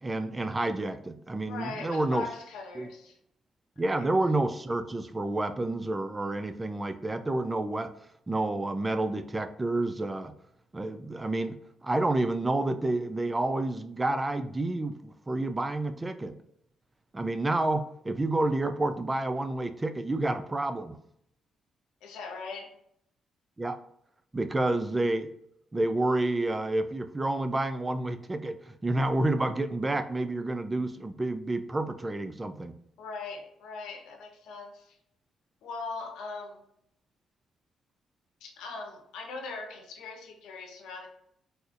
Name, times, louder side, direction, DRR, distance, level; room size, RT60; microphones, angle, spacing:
voice 1, 0.0-2.2 2.8-2.9 3.8-7.9 8.3-10.3 10.7-16.4 17.1-21.0 23.6-23.8 24.3-25.3 25.7-32.7, right 2 dB, 20° right, 0.3 m, -29 dB
voice 2, 1.5-3.2 4.0-4.1 22.0-22.7 33.0-35.0 35.6-36.6 38.4-41.1, left 4 dB, 85° left, 0.8 m, -40 dB
4.1 x 2.4 x 2.4 m
cardioid pair, 90°, 0 cm